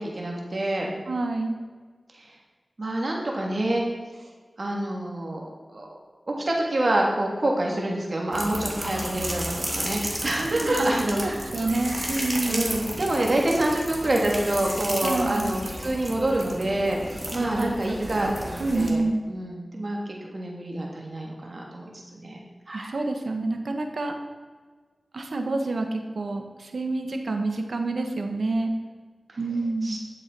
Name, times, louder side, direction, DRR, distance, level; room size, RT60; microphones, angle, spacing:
voice 1, 0.0-0.9 2.1-2.3 2.8-3.8 4.6-6.0 6.3-11.5 12.5-19.0 19.3-22.9 29.8-30.0, right 1 dB, 60° right, -1 dB, 3.2 m, -27 dB
voice 2, 1.1-1.6 10.4-10.9 11.1-12.7 15.0-15.5 17.4-19.2 22.7-24.1 25.1-28.7 29.4-30.0, right 2 dB, 80° right, 4 dB, 1.5 m, -28 dB
sound 1, 8.3-18.9, right 1 dB, 20° right, 2.8 m, -33 dB
12.0 x 7.4 x 6.2 m, 1.5 s
cardioid pair, 40°, 0 cm